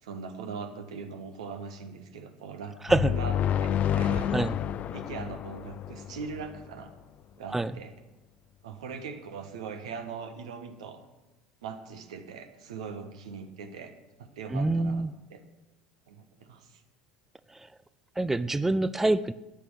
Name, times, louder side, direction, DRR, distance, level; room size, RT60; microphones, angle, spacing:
voice 1, 0.0-2.7 3.0-4.3 4.9-6.9 7.4-7.9 8.6-11.0 11.6-13.9 14.2-15.4 16.1-16.8, right 5 dB, 75° right, 7 dB, 1.5 m, -41 dB
sound 1, 2.9-6.6, left 9 dB, 45° left, 0.5 m, -29 dB
voice 2, 14.5-15.1 17.5-17.7 18.2-19.3, right 2 dB, 10° right, 16 dB, 0.5 m, -26 dB
14.0 x 9.2 x 6.3 m, 1.1 s
figure-of-eight pair, 70°, 4 cm